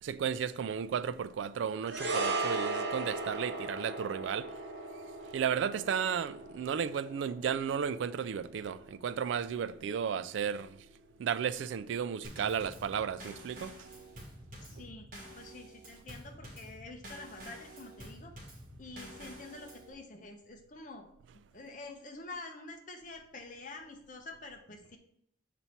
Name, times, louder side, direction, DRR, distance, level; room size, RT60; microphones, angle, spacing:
voice 1, 0.0-4.6 5.2-10.9 11.2-13.8 14.7-14.8, right 7 dB, 80° right, 0.3 m, -34 dB
sound 1, 1.9-10.3 10.6-10.8, right 3 dB, 60° right, 1.1 m, -38 dB
Drum kit / Snare drum / Bass drum, 12.2-19.9, equal, 45° right, 1.9 m, -49 dB
voice 2, 14.6-15.1 15.4-18.3 18.8-21.1 21.5-25.0, left 2 dB, 40° left, 0.9 m, -47 dB
6.8 x 4.3 x 4.4 m
head